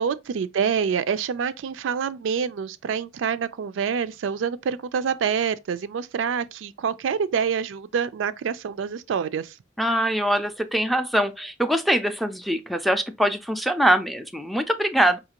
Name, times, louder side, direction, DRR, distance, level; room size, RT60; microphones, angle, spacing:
voice 1, 0.0-9.5, right 7 dB, 85° right, 0.3 m, -26 dB
voice 2, 9.8-15.2, equal, ahead, 0.3 m, -23 dB
5.0 x 2.4 x 2.8 m
head